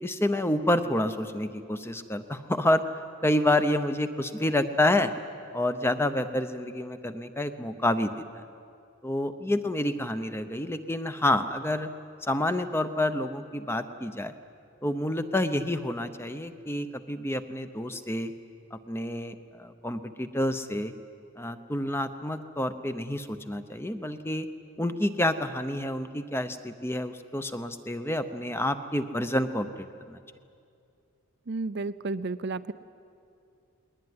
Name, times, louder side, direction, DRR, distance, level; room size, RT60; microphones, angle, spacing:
voice 1, 0.0-2.8 3.2-5.1 5.5-8.2 9.0-11.9 12.2-14.3 14.8-18.3 18.7-20.9 21.4-24.5 24.8-30.2, left 1 dB, 10° left, 10 dB, 0.7 m, -28 dB
voice 2, 31.5-32.7, right 3 dB, 50° right, 13 dB, 0.5 m, -32 dB
20.5 x 20.5 x 9.6 m, 2.5 s
head